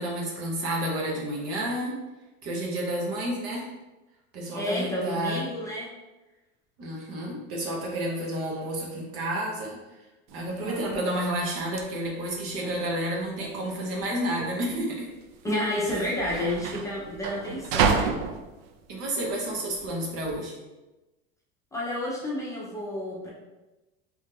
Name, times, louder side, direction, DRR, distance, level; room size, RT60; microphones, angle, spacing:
voice 1, 0.0-1.9 2.4-3.6 4.3-5.4 6.8-9.8 10.3-15.1 15.9-16.0 18.9-20.6, right 1 dB, 50° right, -2 dB, 1.0 m, -30 dB
voice 2, 4.5-5.9 15.4-18.2 21.7-23.3, left 1 dB, 10° left, -6 dB, 0.7 m, -30 dB
sound 1, 10.3-20.3, right 6 dB, 80° right, 0.5 m, -32 dB
3.1 x 2.7 x 3.6 m, 1.1 s
supercardioid pair, 135°, 30 cm